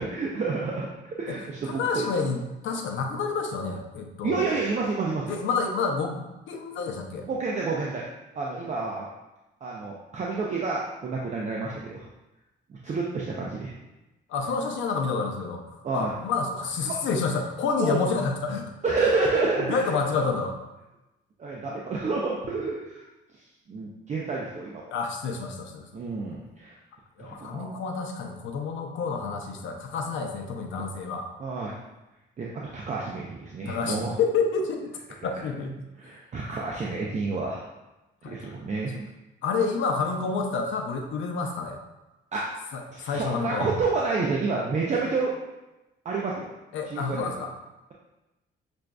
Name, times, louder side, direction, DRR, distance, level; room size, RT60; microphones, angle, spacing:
voice 1, 0.0-2.1 4.2-5.3 7.3-8.0 8.4-9.1 9.6-12.1 12.7-13.7 15.8-16.1 16.9-17.0 17.8-18.0 18.8-19.9 21.4-23.1 23.7-25.0 25.9-26.7 27.2-27.8 31.4-31.8 32.4-34.2 36.0-37.6 38.2-39.0 42.3-42.5 42.9-45.3 46.0-46.5 46.9-47.3, right 3 dB, 35° right, -3 dB, 0.5 m, -29 dB
voice 2, 1.3-4.5 5.3-7.3 14.3-18.7 19.6-20.6 24.9-25.9 27.2-31.3 33.7-34.9 35.2-35.9 38.2-38.4 39.4-41.8 42.7-43.7 46.7-47.5, left 4 dB, 75° left, 3 dB, 0.6 m, -29 dB
5.9 x 2.5 x 2.2 m, 1.0 s
cardioid pair, 90°, 20 cm